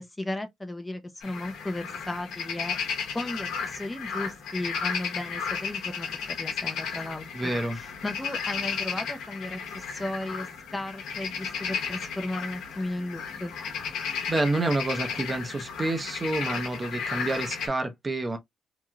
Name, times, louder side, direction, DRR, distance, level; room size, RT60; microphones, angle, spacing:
voice 1, 0.0-2.8 3.1-7.3 7.7-10.5 10.7-13.5, left 1 dB, 15° left, 0.5 m, -35 dB
sound 1, 1.2-17.7, left 6 dB, 85° left, 0.9 m, -34 dB
voice 2, 7.3-7.8 14.3-18.4, right 2 dB, 25° right, 0.7 m, -28 dB
3.0 x 2.6 x 2.3 m
cardioid pair, 90°, 0 cm